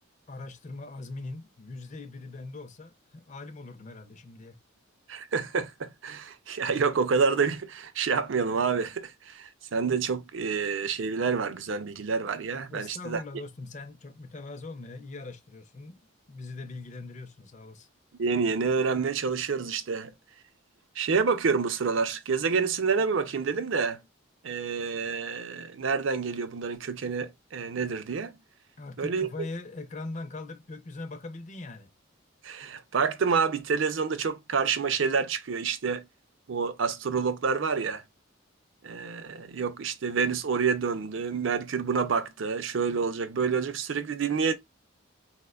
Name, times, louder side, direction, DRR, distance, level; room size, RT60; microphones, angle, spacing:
voice 1, 0.3-4.6 12.7-16.0 16.3-17.9 28.8-31.9, left 3 dB, 35° left, 0.4 m, -41 dB
voice 2, 5.1-13.2 18.2-20.1 21.0-24.0 24.4-28.3 29.0-29.3 32.4-36.0 36.5-38.0 38.8-44.5, right 5 dB, 65° right, 0.5 m, -28 dB
4.2 x 2.1 x 2.2 m
head